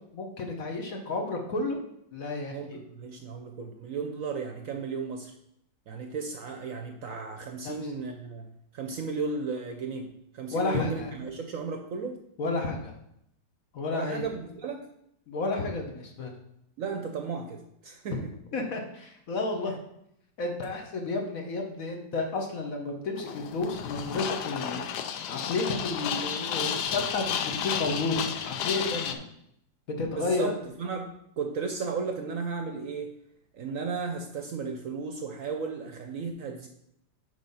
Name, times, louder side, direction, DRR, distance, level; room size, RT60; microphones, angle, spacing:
voice 1, 0.1-1.8 2.1-2.8 7.6-7.9 10.5-11.1 12.4-12.9 13.7-14.2 15.3-16.4 18.1-18.2 18.5-19.7 20.4-24.8 25.3-29.3 29.9-30.5, left 3 dB, 55° left, 3 dB, 1.3 m, -31 dB
voice 2, 2.5-5.3 5.9-8.5 8.7-12.2 13.9-14.9 16.8-18.3 19.7-19.8 30.1-33.1 33.5-36.7, right 5 dB, 65° right, 4 dB, 0.9 m, -35 dB
sound 1, 23.2-29.1, left 8 dB, 75° left, 1.2 m, -32 dB
8.1 x 3.4 x 5.5 m, 0.76 s
omnidirectional pair, 1.9 m